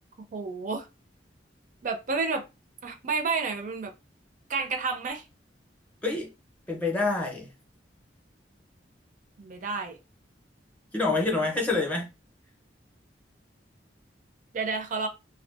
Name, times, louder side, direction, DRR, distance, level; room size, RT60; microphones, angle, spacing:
voice 1, 0.3-0.9 1.8-2.4 2.8-3.9 4.5-5.2 9.4-10.0 11.0-11.3 14.5-15.1, right 4 dB, 45° right, 0.4 m, -30 dB
voice 2, 6.0-6.3 6.7-7.5 10.9-12.1, left 3 dB, 10° left, 0.7 m, -27 dB
2.6 x 2.3 x 2.3 m
head